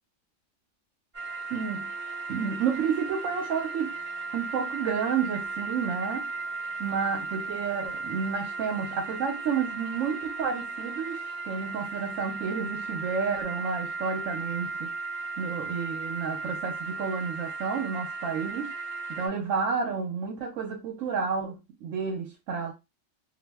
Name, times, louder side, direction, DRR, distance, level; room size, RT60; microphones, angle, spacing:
sound 1, 1.1-19.3, right 3 dB, 40° right, 0.8 m, -36 dB
voice 1, 1.5-1.9 2.3-4.0 4.3-6.3 6.8-14.9 15.4-18.7 19.1-22.7, right 6 dB, 85° right, 1.0 m, -31 dB
2.5 x 2.0 x 3.3 m
omnidirectional pair, 1.3 m